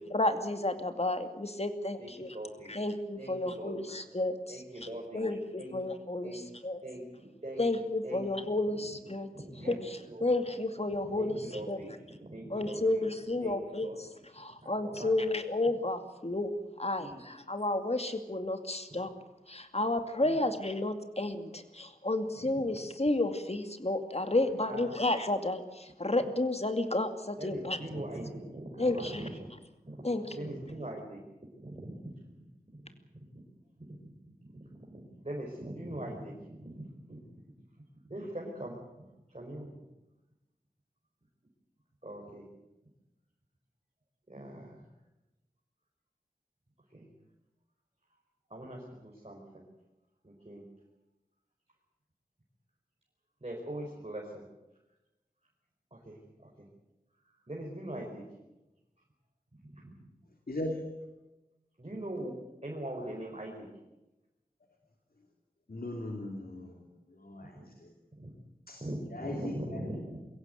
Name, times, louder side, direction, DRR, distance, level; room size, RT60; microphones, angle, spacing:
voice 1, 0.1-2.4 2.7-4.6 5.1-6.8 7.6-9.3 9.7-9.8 10.2-11.8 12.5-14.1 14.4-19.1 19.5-27.8 28.8-29.2 30.0-30.5, left 2 dB, 40° left, 8 dB, 2.4 m, -31 dB
voice 2, 2.0-2.8 3.2-4.0 4.5-5.3 5.5-5.7 6.2-6.5 6.8-7.6 8.0-8.9 9.3-10.3 11.1-13.1 13.4-14.2 14.6-15.4 17.0-17.3 18.9-19.0 20.2-20.5 22.5-22.8 24.6-25.0 27.4-29.5 29.8-31.2 31.6-33.4 33.8-37.2 38.1-39.7 42.0-42.5 44.3-44.8 46.9-47.1 48.5-49.4 50.2-50.6 53.4-54.4 55.9-56.7 57.2-58.2 59.6-60.1 61.8-62.3 62.6-63.7 67.4-67.7 68.1-68.3 68.8-70.2, right 1 dB, 40° right, -1 dB, 4.9 m, -42 dB
voice 3, 60.5-60.9 65.7-66.8 67.2-67.5 68.7-68.8 69.1-69.5 69.8-69.9, left 1 dB, 70° left, 1 dB, 2.9 m, -38 dB
23.0 x 16.5 x 9.3 m, 0.99 s
wide cardioid pair, 50°, 16 cm